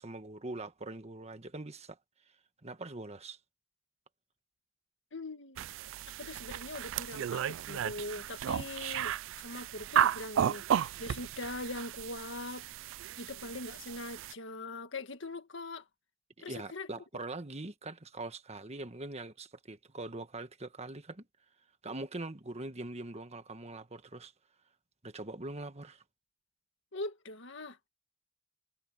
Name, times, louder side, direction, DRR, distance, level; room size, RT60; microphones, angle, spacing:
voice 1, 0.0-2.0 2.6-3.4 16.5-21.3 21.8-24.3 25.0-26.0, right 2 dB, 35° right, 1.4 m, -42 dB
voice 2, 5.1-5.7 6.2-12.7 13.2-15.8 16.4-16.9 26.9-27.8, left 2 dB, 70° left, 1.9 m, -42 dB
sound 1, 5.6-14.3, right 9 dB, 70° right, 0.3 m, -34 dB
head